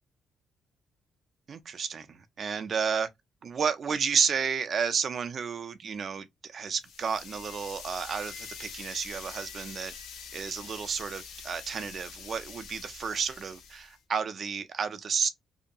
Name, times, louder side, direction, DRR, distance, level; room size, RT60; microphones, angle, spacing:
voice 1, 1.5-3.1 3.4-9.9 10.3-15.3, right 6 dB, 50° right, 0.5 m, -31 dB
sound 1, 6.8-14.0, left 6 dB, 90° left, 0.6 m, -45 dB
2.8 x 2.2 x 2.5 m
cardioid pair, 90°, 0 cm